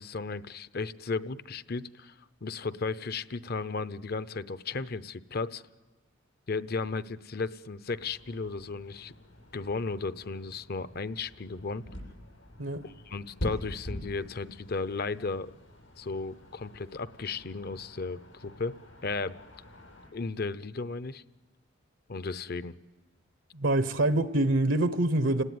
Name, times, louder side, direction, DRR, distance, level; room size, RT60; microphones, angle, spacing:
voice 1, 0.0-2.1 2.4-5.6 6.5-9.1 9.5-11.8 12.8-15.5 16.0-18.7 19.0-19.4 20.1-21.2 22.1-22.7, left 4 dB, 55° left, 0.7 m, -35 dB
sound 1, 7.8-20.1, left 1 dB, 75° left, 7.5 m, -45 dB
voice 2, 23.5-25.4, right 1 dB, 80° right, 0.9 m, -25 dB
29.5 x 18.5 x 9.4 m
head